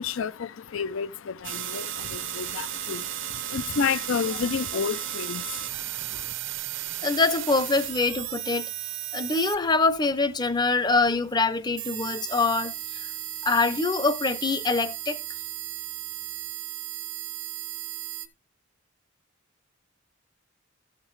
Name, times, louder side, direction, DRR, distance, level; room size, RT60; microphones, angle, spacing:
voice 1, 0.0-6.3, left 6 dB, 70° left, 0.5 m, -31 dB
sound 1, 1.4-18.3, right 12 dB, 65° right, 0.9 m, -35 dB
voice 2, 7.0-8.7 9.1-13.1 13.4-15.2, left 3 dB, 20° left, 0.6 m, -24 dB
14.0 x 5.9 x 3.1 m
head